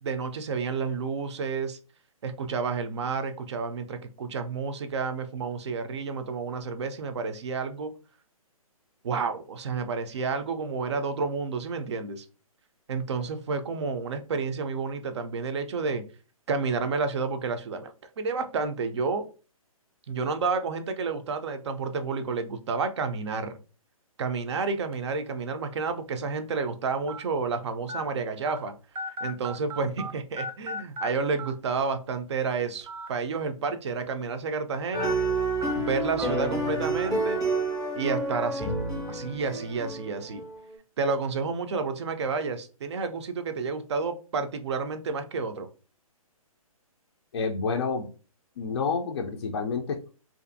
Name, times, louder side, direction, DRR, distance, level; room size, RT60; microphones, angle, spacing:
voice 1, 0.0-1.8 2.2-7.9 9.0-12.3 12.9-16.0 16.5-19.3 20.1-23.6 24.2-28.7 29.2-35.3 35.8-37.5 38.0-38.7 39.1-40.4 41.0-45.7, right 4 dB, 50° right, 9 dB, 0.4 m, -30 dB
sound 1, 24.9-25.1 25.9-26.0 27.1-27.2 27.9-28.0 28.5-28.6 28.9-30.1 30.4-31.1 31.4-31.5 32.8-33.1 33.5-33.6 34.9-35.1 35.6-35.7 36.2-36.3 37.0-37.1, left 1 dB, 90° right, 0.8 m, -35 dB
sound 2, 34.9-40.6, right 2 dB, 5° right, 0.6 m, -29 dB
voice 2, 47.3-48.1 48.6-50.1, left 5 dB, 45° left, 2 dB, 0.4 m, -29 dB
2.5 x 2.5 x 2.5 m, 0.36 s
hypercardioid pair, 155°, 19 cm